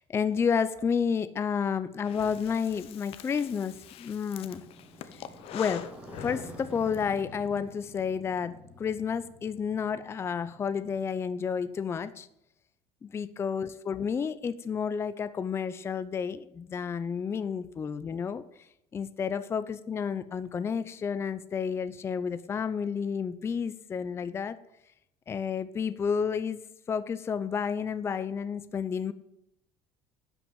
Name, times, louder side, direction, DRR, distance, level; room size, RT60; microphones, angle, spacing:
voice 1, 0.0-4.6 5.5-5.9 6.2-12.3 13.0-18.4 18.9-24.6 25.3-26.6 26.9-29.1, left 6 dB, 20° left, 13 dB, 0.5 m, -31 dB
Breathing, 2.0-7.0, left 10 dB, 50° left, 0.8 m, -44 dB
Motorcycle, 3.3-12.0, equal, 10° right, 2.0 m, -50 dB
11.0 x 5.9 x 8.8 m, 0.81 s
cardioid pair, 150°, 12 cm